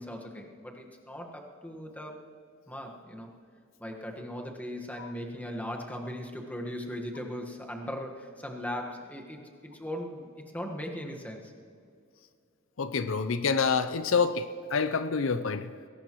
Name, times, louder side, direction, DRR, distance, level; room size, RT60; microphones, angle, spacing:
voice 1, 0.0-2.2 2.7-3.3 3.8-11.5, equal, 10° left, 1 dB, 1.5 m, -38 dB
voice 2, 12.8-14.5 14.7-15.7, left 5 dB, 70° left, 11 dB, 0.6 m, -27 dB
21.0 x 18.0 x 3.1 m, 2.3 s
head